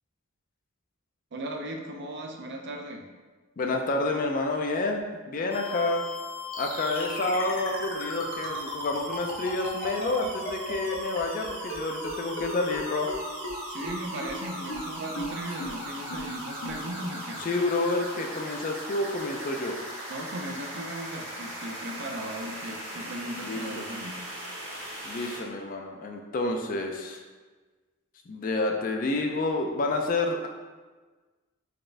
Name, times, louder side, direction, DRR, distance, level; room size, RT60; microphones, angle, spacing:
voice 1, 1.3-3.1 13.7-17.5 20.1-24.2, right 1 dB, 50° right, 2 dB, 0.4 m, -37 dB
voice 2, 3.6-6.0 6.6-13.1 17.4-19.8 23.4-23.9 25.0-27.2 28.3-30.5, left 2 dB, 40° left, 2 dB, 0.3 m, -29 dB
sound 1, 5.5-25.4, equal, 70° right, 1.3 m, -38 dB
sound 2, 6.5-11.8 12.0-12.1 12.4-12.5 12.7-12.8 13.1-13.2 13.4-13.5 13.8-13.9 14.2-14.3 14.7-14.8 15.2-15.3 15.6-15.7 16.1-16.2 16.6-16.7, left 2 dB, 70° left, 0.8 m, -36 dB
4.1 x 3.3 x 2.5 m, 1.3 s
head